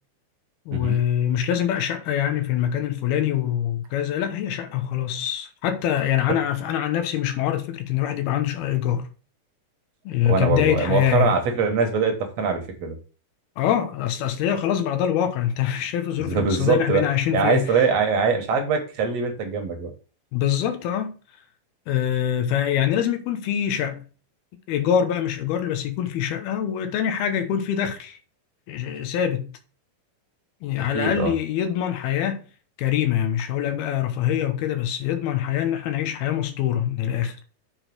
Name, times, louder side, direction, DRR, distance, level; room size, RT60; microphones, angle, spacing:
voice 1, 0.7-9.1 10.0-11.4 13.6-17.8 20.3-21.2 21.9-24.0 24.7-28.2 28.7-29.5 30.6-32.4 32.8-37.4, left 10 dB, 85° left, 3.0 m, -24 dB
voice 2, 10.2-13.0 16.2-17.0 17.3-19.9 30.9-31.3, right 5 dB, 55° right, 2.1 m, -23 dB
7.4 x 4.5 x 6.0 m
omnidirectional pair, 4.3 m